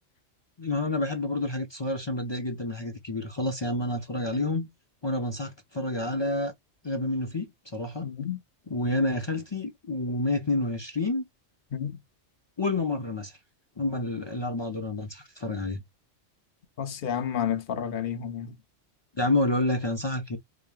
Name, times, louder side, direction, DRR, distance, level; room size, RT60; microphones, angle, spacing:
voice 1, 0.6-4.7 5.0-6.5 6.8-8.1 8.7-11.3 12.6-13.4 13.8-15.8 19.2-20.4, left 2 dB, 40° left, 0.4 m, -29 dB
voice 2, 8.0-8.4 11.7-12.0 16.8-18.5, left 9 dB, 55° left, 0.8 m, -31 dB
5.0 x 2.8 x 2.3 m
omnidirectional pair, 1.2 m